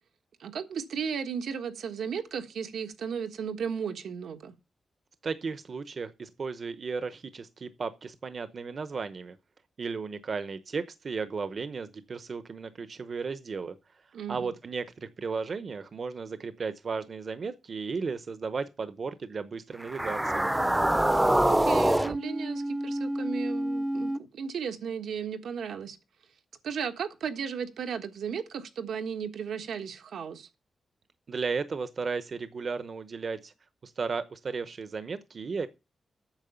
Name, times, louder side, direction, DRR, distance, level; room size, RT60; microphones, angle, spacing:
voice 1, 0.4-4.5 14.1-14.5 21.5-26.0 26.6-30.5, right 7 dB, 90° right, 1.4 m, -35 dB
voice 2, 5.2-9.4 9.8-13.8 14.3-20.5 31.3-33.5 33.8-35.7, right 5 dB, 55° right, 0.9 m, -35 dB
sound 1, 19.8-24.2, right 1 dB, 10° right, 0.6 m, -26 dB
8.9 x 6.5 x 6.9 m
cardioid pair, 85°, 0 cm